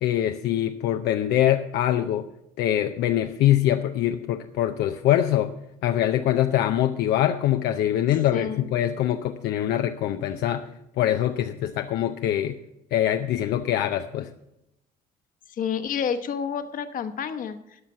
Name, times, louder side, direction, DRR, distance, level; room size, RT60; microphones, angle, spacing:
voice 1, 0.0-2.3 2.6-5.5 5.8-10.7 11.0-12.6 12.9-14.3, left 12 dB, 75° left, 7 dB, 0.6 m, -23 dB
voice 2, 8.3-8.6 15.5-17.8, left 7 dB, 55° left, 9 dB, 1.1 m, -29 dB
12.5 x 5.7 x 8.0 m, 0.87 s
cardioid pair, 110°, 17 cm